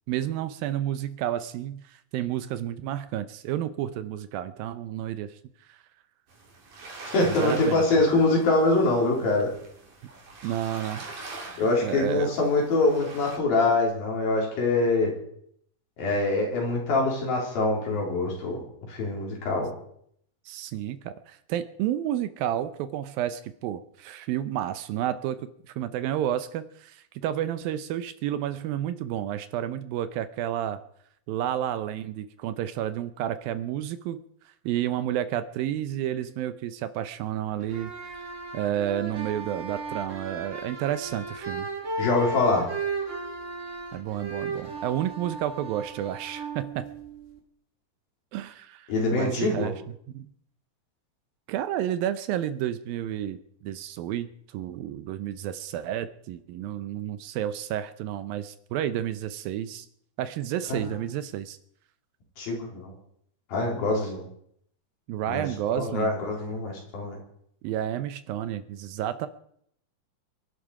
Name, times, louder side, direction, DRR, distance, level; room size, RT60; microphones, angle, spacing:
voice 1, 0.1-5.4 5.7-5.8 7.2-7.8 10.4-11.1 11.4-12.3 20.5-25.5 25.8-30.8 31.3-34.2 34.7-37.9 38.5-41.7 43.9-46.9 48.3-49.7 50.1-50.3 51.5-53.4 53.6-59.9 60.2-61.6 65.1-66.1 67.6-69.3, right 11 dB, 75° right, 12 dB, 2.3 m, -31 dB
sound 1, 6.3-13.4, right 3 dB, 55° right, 4.2 m, -44 dB
voice 2, 7.1-9.5 11.6-15.1 16.0-18.6 18.9-19.7 42.0-42.7 48.9-49.7 60.7-61.0 62.4-62.9 63.5-64.2 65.3-65.4 65.8-67.2, left 2 dB, 65° left, -1 dB, 5.5 m, -24 dB
sound 2, 37.6-47.4, right 3 dB, 30° right, 1.5 m, -35 dB
24.5 x 11.5 x 4.8 m, 0.69 s
omnidirectional pair, 4.4 m